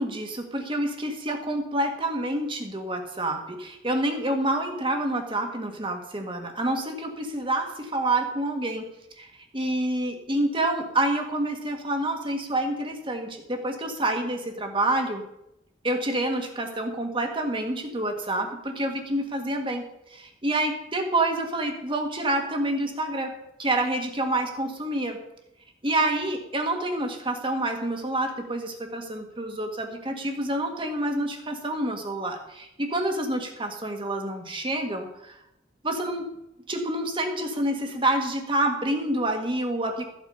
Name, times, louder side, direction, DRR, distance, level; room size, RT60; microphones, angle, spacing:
voice 1, 0.0-8.9 9.2-9.3 9.5-15.2 15.8-19.8 20.1-23.3 23.6-25.2 25.8-35.4 35.8-36.3 36.7-40.1, right 1 dB, 30° right, 4 dB, 1.8 m, -28 dB
14.0 x 8.3 x 5.5 m, 0.83 s
head